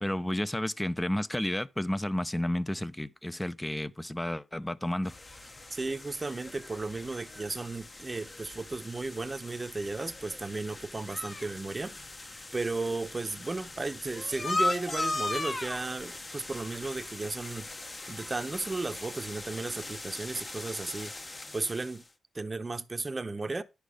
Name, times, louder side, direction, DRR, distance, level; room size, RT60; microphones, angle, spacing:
voice 1, 0.0-5.2, left 1 dB, 10° left, 0.6 m, -31 dB
sound 1, 5.0-22.0, left 2 dB, 25° left, 0.9 m, -38 dB
voice 2, 5.7-12.0 12.5-17.7 18.1-21.1 21.5-22.0 22.3-23.6, right 3 dB, 25° right, 0.8 m, -34 dB
10.5 x 5.2 x 4.9 m
cardioid pair, 105°, 0 cm